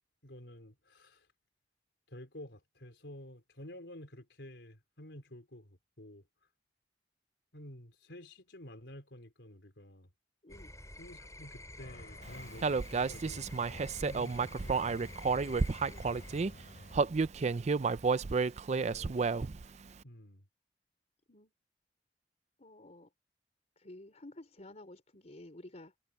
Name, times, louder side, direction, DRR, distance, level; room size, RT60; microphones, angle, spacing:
voice 1, 0.2-1.3 2.1-6.2 7.5-10.1 11.0-13.5 14.0-15.6 16.9-17.3 18.7-19.2 20.0-20.5, left 1 dB, 90° left, 4.4 m, -51 dB
sound 1, 10.5-16.5, left 1 dB, 20° left, 4.4 m, -50 dB
sound 2, 11.8-17.0, left 1 dB, 60° left, 3.0 m, -53 dB
Human voice, 12.6-16.5 16.9-19.7, right 4 dB, 40° right, 0.5 m, -31 dB
voice 2, 18.5-19.0 21.3-21.5 22.6-23.1 23.8-26.0, left 1 dB, 40° left, 4.0 m, -52 dB
head